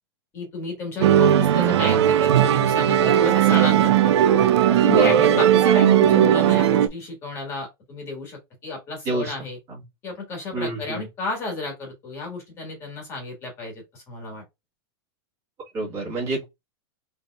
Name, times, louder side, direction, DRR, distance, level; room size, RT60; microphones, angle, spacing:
voice 1, 0.3-4.2 4.7-9.6 10.0-14.4, left 3 dB, 20° left, 1.4 m, -32 dB
Musical instrument, 1.0-6.9, right 10 dB, 90° right, 0.5 m, -17 dB
voice 2, 10.5-11.0 15.7-16.5, right 2 dB, 20° right, 1.6 m, -27 dB
4.2 x 3.4 x 2.3 m
supercardioid pair, 175°, 14 cm